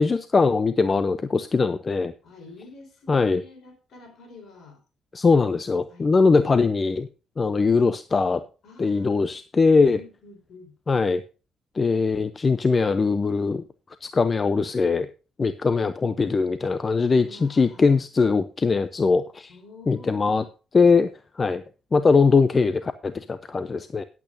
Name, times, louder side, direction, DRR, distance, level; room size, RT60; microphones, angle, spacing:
voice 1, 0.0-2.1 3.1-3.4 5.1-7.1 7.4-8.4 8.8-10.0 10.9-11.2 11.8-13.6 14.0-15.1 15.4-19.5 19.9-20.4 20.7-21.6 21.9-24.0, left 4 dB, 35° left, 12 dB, 0.6 m, -21 dB
voice 2, 2.2-4.8 5.9-6.7 7.7-7.9 8.6-9.3 9.9-10.7 17.2-17.9 19.5-20.5, left 3 dB, 65° left, 5 dB, 4.6 m, -48 dB
17.5 x 8.5 x 2.7 m, 0.33 s
cardioid pair, 90°, 0 cm